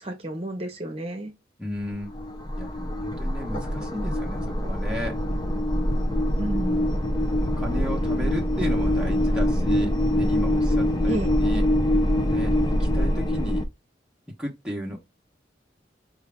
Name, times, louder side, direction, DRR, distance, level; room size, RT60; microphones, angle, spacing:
voice 1, 0.0-1.3 6.4-6.9 11.1-11.3, right 1 dB, 30° right, 0.9 m, -31 dB
voice 2, 1.6-2.1 2.6-5.2 7.4-9.9 10.2-11.6 12.3-12.5 12.8-13.6 14.4-15.0, equal, 5° right, 1.0 m, -34 dB
sound 1, 1.7-13.7, left 1 dB, 25° left, 0.5 m, -24 dB
4.9 x 2.7 x 3.4 m
head